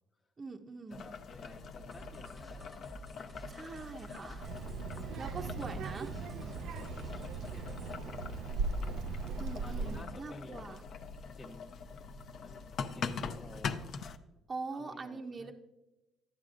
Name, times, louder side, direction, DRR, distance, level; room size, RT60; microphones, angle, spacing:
voice 1, 0.4-1.1 3.5-4.5 5.2-6.1 9.4-10.8 14.5-15.5, right 3 dB, 25° right, 3 dB, 0.5 m, -43 dB
Boiling, 0.9-14.2, left 5 dB, 50° left, 0.5 m, -43 dB
voice 2, 0.9-2.9 4.9-5.6 6.4-8.5 9.6-10.8 11.3-11.7 12.4-13.8 14.7-15.5, left 2 dB, 35° left, -3 dB, 1.0 m, -54 dB
sound 1, 1.9-8.0, right 2 dB, 5° right, 0.8 m, -51 dB
Child speech kid speaking, 4.4-10.0, right 4 dB, 75° right, 0.5 m, -38 dB
11.5 x 9.0 x 2.5 m, 1.0 s
cardioid pair, 130°, 0 cm